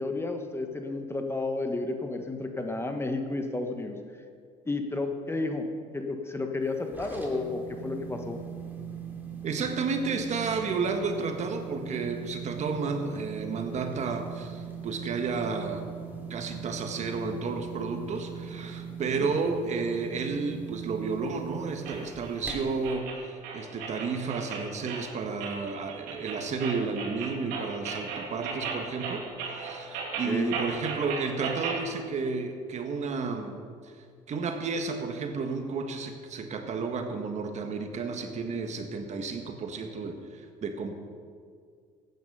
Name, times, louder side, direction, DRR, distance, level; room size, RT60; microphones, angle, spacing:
voice 1, 0.0-4.0 4.7-5.7 5.9-8.4 30.2-30.6, left 2 dB, 15° left, 5 dB, 1.3 m, -31 dB
sound 1, 6.6-22.9, right 6 dB, 10° right, 3.0 m, -40 dB
voice 2, 9.4-15.9 16.3-33.9 34.3-41.0, right 4 dB, 50° right, 5 dB, 1.5 m, -32 dB
sound 2, 21.8-31.8, right 5 dB, 75° right, 2.9 m, -36 dB
14.5 x 9.4 x 5.5 m, 2.1 s
supercardioid pair, 90°, 15 cm